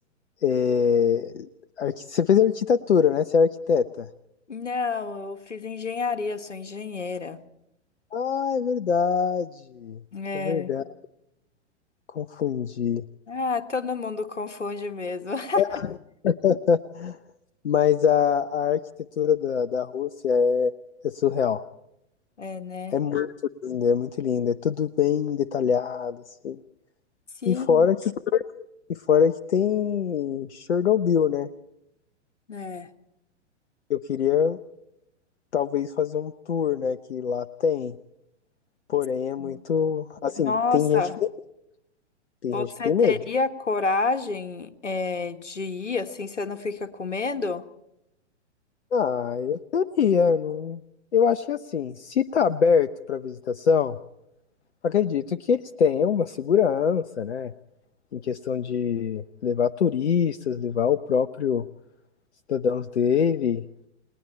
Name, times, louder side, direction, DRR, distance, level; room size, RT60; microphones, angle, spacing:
voice 1, 0.4-1.5 1.8-4.1 8.1-10.0 10.3-10.8 12.1-13.0 15.6-15.8 16.2-17.2 17.6-18.8 19.2-20.7 21.0-21.6 22.9-23.3 23.6-26.6 27.5-31.5 33.9-34.6 35.5-37.9 38.9-41.0 42.4-43.2 48.9-50.8 51.1-54.0 54.8-57.5 58.1-61.6 62.5-63.6, left 7 dB, 70° left, 13 dB, 0.9 m, -24 dB
voice 2, 4.5-7.4 10.1-10.7 13.3-15.6 22.4-23.0 27.4-27.9 32.5-32.9 39.4-39.6 40.4-41.2 42.5-47.7, left 4 dB, 85° left, 10 dB, 1.7 m, -29 dB
30.0 x 19.5 x 4.5 m, 0.82 s
figure-of-eight pair, 110°, 35 cm